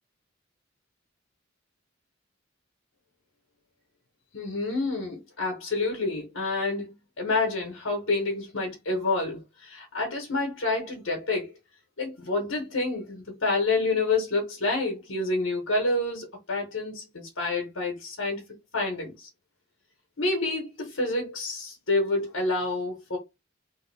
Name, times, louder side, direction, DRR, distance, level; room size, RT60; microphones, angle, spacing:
voice 1, 4.3-6.9 7.2-11.5 12.0-18.4 18.7-19.3 20.2-23.2, left 3 dB, 75° left, 1.2 m, -28 dB
3.4 x 2.7 x 3.3 m
head